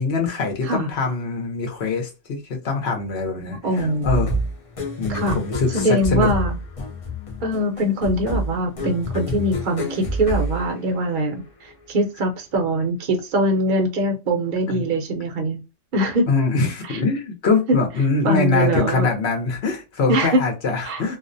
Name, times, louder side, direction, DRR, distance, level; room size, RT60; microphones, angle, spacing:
voice 1, 0.0-4.4 5.0-6.3 14.7-14.8 16.3-21.2, left 4 dB, 65° left, 0.9 m, -23 dB
voice 2, 3.6-4.1 5.1-5.4 5.7-6.6 7.4-15.6 15.9-16.3 16.9-17.0 18.2-19.1 20.1-20.4 20.8-21.0, right 1 dB, 50° right, 0.7 m, -22 dB
sound 1, 3.8-11.4, equal, 45° left, 0.5 m, -28 dB
2.4 x 2.1 x 2.4 m
omnidirectional pair, 1.2 m